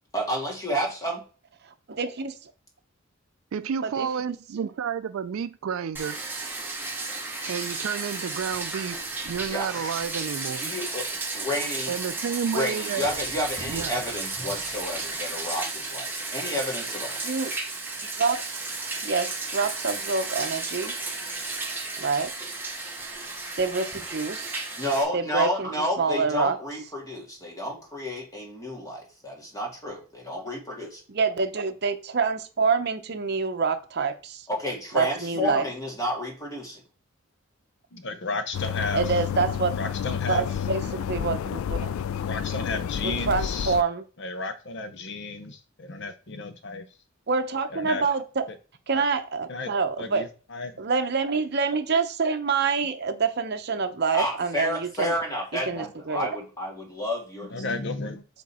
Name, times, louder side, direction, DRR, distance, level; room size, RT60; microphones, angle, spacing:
voice 1, 0.1-1.2 9.5-9.9 10.6-11.1 11.3-11.9 12.5-17.2 24.8-31.0 34.5-36.8 54.1-57.6, equal, 15° left, 1.7 m, -31 dB
voice 2, 1.9-2.5 3.8-4.1 4.6-4.7 17.2-17.5 18.2-18.4 19.0-20.9 22.0-22.3 23.1-23.3 23.6-24.6 25.1-25.7 26.0-26.6 31.1-34.5 34.9-35.7 38.9-39.7 40.3-41.9 43.0-44.0 47.3-48.4 48.9-50.3 50.8-55.1 55.7-56.3, right 4 dB, 55° right, 0.7 m, -26 dB
voice 3, 3.5-6.2 7.4-9.0 9.2-10.7 11.9-13.1 13.7-14.0, right 7 dB, 80° right, 0.4 m, -30 dB
Bathtub (filling or washing), 5.9-25.0, right 3 dB, 10° right, 1.0 m, -33 dB
voice 4, 37.9-39.1 39.8-40.6 42.3-43.8 44.2-46.9 47.7-48.1 48.5-48.6 48.9-49.1 49.5-49.7 50.0-50.8 55.8-55.9 57.5-58.2, left 3 dB, 60° left, 0.8 m, -33 dB
sound 1, 38.5-43.8, left 8 dB, 90° left, 0.3 m, -30 dB
6.2 x 3.6 x 4.3 m
head